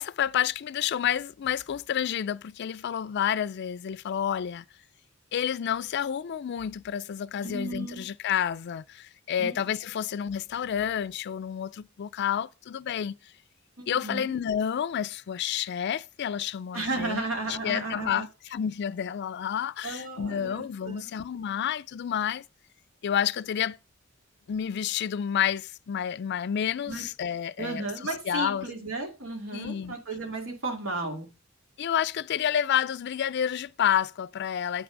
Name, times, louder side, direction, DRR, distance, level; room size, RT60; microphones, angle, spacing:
voice 1, 0.0-4.6 5.3-13.2 13.9-17.2 17.5-22.4 23.0-23.8 24.5-27.8 28.3-28.7 29.5-30.0 31.8-34.8, left 9 dB, 55° left, 0.4 m, -29 dB
voice 2, 7.4-8.0 9.4-9.5 13.8-14.3 16.7-18.3 19.8-21.1 26.9-27.1 27.6-31.3, right 2 dB, 80° right, 2.5 m, -34 dB
8.5 x 6.0 x 5.1 m
head